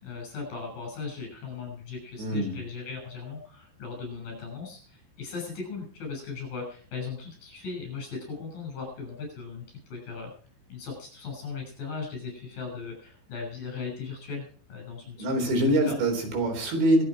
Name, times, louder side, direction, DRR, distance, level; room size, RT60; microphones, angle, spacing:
voice 1, 0.0-10.3 10.7-16.0, left 5 dB, 55° left, 3 dB, 8.5 m, -38 dB
voice 2, 2.2-2.5 15.2-17.0, right 1 dB, 75° right, 4 dB, 6.2 m, -24 dB
24.0 x 8.7 x 4.9 m, 0.44 s
omnidirectional pair, 5.2 m